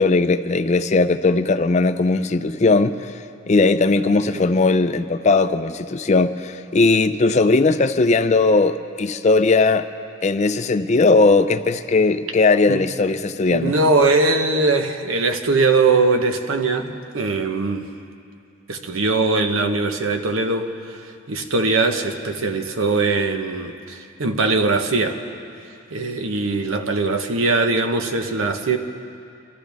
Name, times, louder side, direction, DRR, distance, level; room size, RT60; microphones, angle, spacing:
voice 1, 0.0-2.9 3.5-9.9 10.2-13.7, left 3 dB, 35° left, 10 dB, 0.4 m, -18 dB
voice 2, 13.5-17.9 18.7-25.2 25.9-28.8, right 3 dB, 85° right, 6 dB, 1.0 m, -21 dB
26.0 x 14.0 x 3.5 m, 2.5 s
head